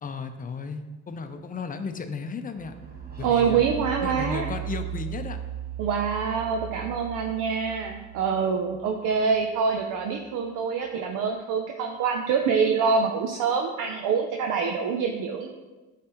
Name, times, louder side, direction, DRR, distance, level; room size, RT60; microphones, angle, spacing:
voice 1, 0.0-2.7 3.2-3.6 4.0-5.4, left 5 dB, 25° left, 8 dB, 0.5 m, -34 dB
sound 1, 2.5-10.2, right 11 dB, 30° right, 1.0 m, -38 dB
voice 2, 3.2-4.5 5.8-15.5, right 5 dB, 75° right, 3 dB, 0.6 m, -25 dB
9.7 x 3.3 x 3.0 m, 1.2 s
cardioid pair, 95°, 32 cm